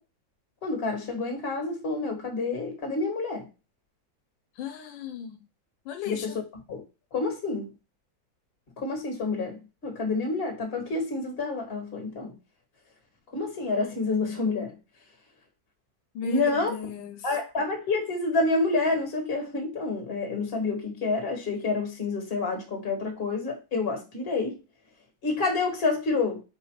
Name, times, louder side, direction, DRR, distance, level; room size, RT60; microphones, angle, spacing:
voice 1, 0.6-3.4 6.1-6.3 6.7-6.8 7.1-7.7 8.8-9.6 9.8-12.3 13.3-14.7 16.2-16.7 17.2-24.5 25.2-26.4, left 3 dB, 35° left, 1.6 m, -28 dB
voice 2, 4.6-5.4 5.9-6.4 16.1-17.3, left 7 dB, 85° left, 1.3 m, -36 dB
4.7 x 2.4 x 4.5 m
omnidirectional pair, 2.0 m